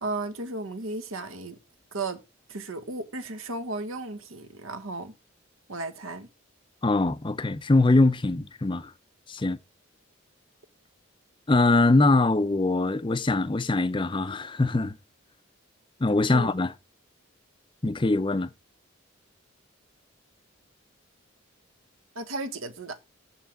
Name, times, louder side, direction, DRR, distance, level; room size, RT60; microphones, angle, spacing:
voice 1, 0.0-1.6 1.9-2.2 2.5-5.1 5.7-6.3 16.3-16.5 22.1-23.0, right 2 dB, 85° right, 1.4 m, -34 dB
voice 2, 6.8-8.9 9.3-9.6 11.5-15.0 16.0-16.7 17.8-18.5, left 2 dB, 25° left, 0.5 m, -22 dB
7.4 x 5.6 x 7.5 m
head